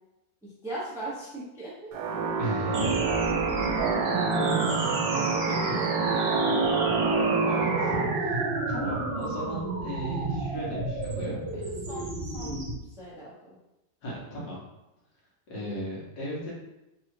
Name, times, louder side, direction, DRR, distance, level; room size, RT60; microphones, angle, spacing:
voice 1, 0.4-1.9 5.1-6.6 11.5-11.6 11.9-12.6 13.0-13.6 15.5-15.7, right 1 dB, 5° right, -6 dB, 0.6 m, -39 dB
sound 1, 1.9-8.0, right 4 dB, 75° right, 1.3 m, -27 dB
voice 2, 2.4-3.0 4.6-5.1 5.5-5.7 7.5-8.4 8.7-11.4 14.0-14.6 15.5-16.5, equal, 65° left, -5 dB, 1.9 m, -36 dB
sound 2, 2.7-12.7, right 2 dB, 50° right, 0.7 m, -31 dB
4.1 x 2.4 x 4.6 m, 0.96 s
omnidirectional pair, 1.9 m